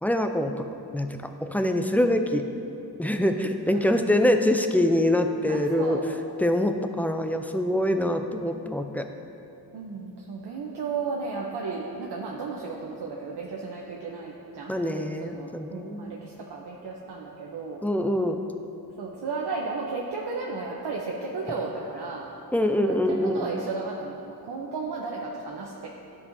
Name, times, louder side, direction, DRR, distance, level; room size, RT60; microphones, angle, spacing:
voice 1, 0.0-0.6 0.9-2.4 3.0-6.0 6.4-9.1 14.7-16.1 17.8-18.4 22.5-23.5, left 1 dB, 5° left, 6 dB, 0.3 m, -24 dB
voice 2, 3.7-4.4 5.5-6.0 9.7-17.8 19.0-22.3 22.9-25.9, right 4 dB, 85° right, -2 dB, 0.8 m, -34 dB
12.5 x 5.4 x 2.6 m, 2.9 s
wide cardioid pair, 100°, 39 cm